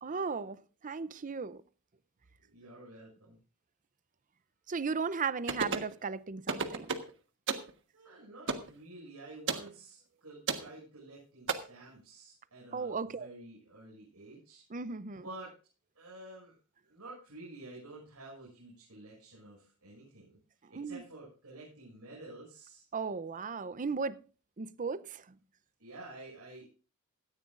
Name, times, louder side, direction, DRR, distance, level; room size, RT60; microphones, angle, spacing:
voice 1, 0.0-1.6 4.7-6.9 12.7-13.3 14.7-15.2 20.7-21.0 22.9-24.2 24.6-25.2, right 5 dB, 35° right, 0.6 m, -36 dB
voice 2, 2.4-3.4 7.9-14.6 15.1-15.5 16.0-16.5 16.8-20.4 20.7-22.9 25.8-26.7, right 2 dB, 90° right, 6.9 m, -50 dB
sound 1, 5.5-5.9 6.5-7.1 7.5-7.7 8.5-8.7 9.5-9.7 10.5-10.7 11.5-11.6, right 5 dB, 55° right, 1.4 m, -32 dB
17.5 x 13.5 x 2.5 m
head